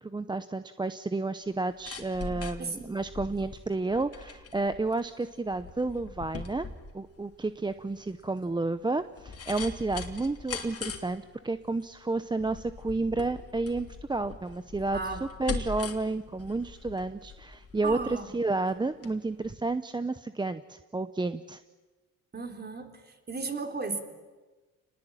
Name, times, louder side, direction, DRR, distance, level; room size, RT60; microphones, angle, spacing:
voice 1, 0.0-6.7 6.9-21.6, right 3 dB, 15° right, 11 dB, 0.8 m, -31 dB
sound 1, 1.5-19.1 19.4-19.5, left 5 dB, 50° left, 3.0 m, -42 dB
voice 2, 2.6-3.0 14.9-15.2 17.8-18.3 22.3-23.0 23.3-24.0, right 4 dB, 35° right, 5 dB, 3.7 m, -35 dB
28.0 x 20.0 x 8.9 m, 1.3 s
cardioid pair, 90°, 30 cm